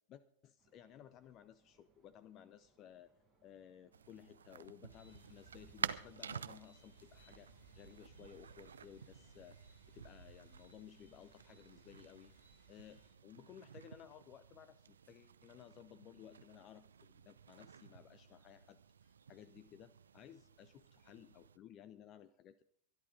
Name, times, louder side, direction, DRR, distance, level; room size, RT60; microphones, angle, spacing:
voice 1, 0.1-3.1 3.4-12.3 12.7-22.6, left 10 dB, 35° left, 16 dB, 0.7 m, -58 dB
sound 1, 0.6-9.3, right 3 dB, 15° right, 7.9 m, -76 dB
sound 2, 3.9-21.6, right 7 dB, 70° right, 0.6 m, -51 dB
sound 3, 4.9-13.1, right 2 dB, 90° right, 4.3 m, -65 dB
24.0 x 11.0 x 3.9 m, 0.63 s
figure-of-eight pair, 90°, 0 cm